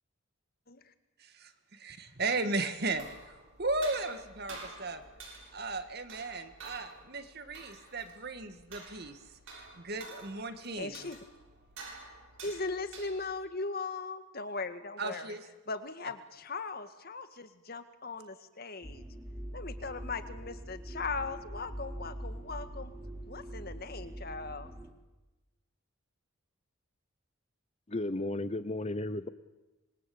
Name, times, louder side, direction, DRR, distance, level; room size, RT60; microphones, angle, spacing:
voice 1, 1.8-3.1 3.6-5.0 5.5-9.2 9.5-11.0 15.0-15.4, right 3 dB, 50° right, 9 dB, 2.0 m, -35 dB
sound 1, 2.8-13.5, right 3 dB, 65° right, 7.9 m, -50 dB
voice 2, 10.8-11.2 12.4-15.4 15.7-19.1 19.5-22.9 23.3-24.7, left 3 dB, 45° left, 10 dB, 1.8 m, -39 dB
sound 2, 18.8-24.9, right 1 dB, 15° right, 3.2 m, -43 dB
voice 3, 27.9-29.3, left 2 dB, 30° left, 12 dB, 0.8 m, -34 dB
26.5 x 21.5 x 8.7 m, 1.1 s
head